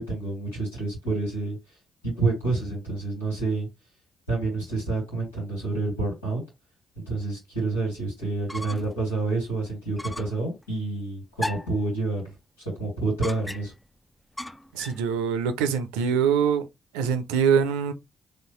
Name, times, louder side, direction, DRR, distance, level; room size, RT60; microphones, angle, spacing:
voice 1, 0.0-1.6 2.0-3.7 4.3-6.4 7.0-12.2 12.8-13.7, right 3 dB, 85° left, 2.5 m, -28 dB
sound 1, 8.5-9.0 9.4-9.5 10.0-10.4 11.4-11.8 13.2-13.9 14.4-15.1, left 1 dB, 10° left, 0.4 m, -36 dB
voice 2, 14.7-16.7 16.9-17.9, right 7 dB, 75° right, 0.5 m, -23 dB
4.2 x 3.2 x 3.1 m
figure-of-eight pair, 40°, 0 cm